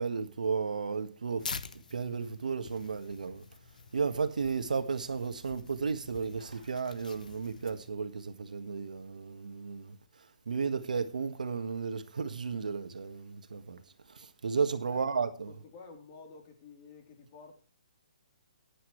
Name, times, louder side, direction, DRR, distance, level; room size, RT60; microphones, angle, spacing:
voice 1, 0.0-1.5 1.9-3.4 3.9-10.0 10.5-13.8 14.1-15.5, right 5 dB, 85° right, 1.6 m, -33 dB
Tearing, 1.4-7.9, left 5 dB, 85° left, 1.1 m, -46 dB
voice 2, 14.9-17.5, left 4 dB, 35° left, 3.7 m, -51 dB
14.5 x 10.0 x 3.3 m
hypercardioid pair, 150°, 4 cm